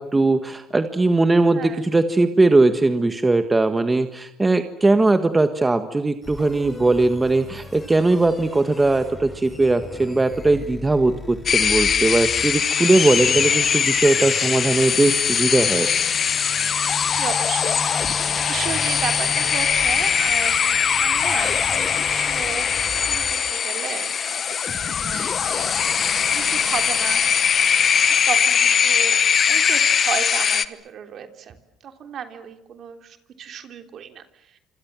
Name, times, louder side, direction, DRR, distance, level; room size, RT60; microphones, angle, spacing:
voice 1, 0.0-15.9, right 2 dB, 15° right, 9 dB, 1.6 m, -19 dB
sound 1, 6.2-23.3, left 2 dB, 15° left, 6.9 m, -38 dB
sound 2, 11.5-30.7, left 7 dB, 40° left, 1.2 m, -21 dB
voice 2, 17.1-25.8 26.3-27.3 28.3-31.6 31.8-34.2, right 8 dB, 55° right, 7 dB, 3.5 m, -34 dB
27.0 x 27.0 x 7.6 m, 0.77 s
cardioid pair, 105°, 0 cm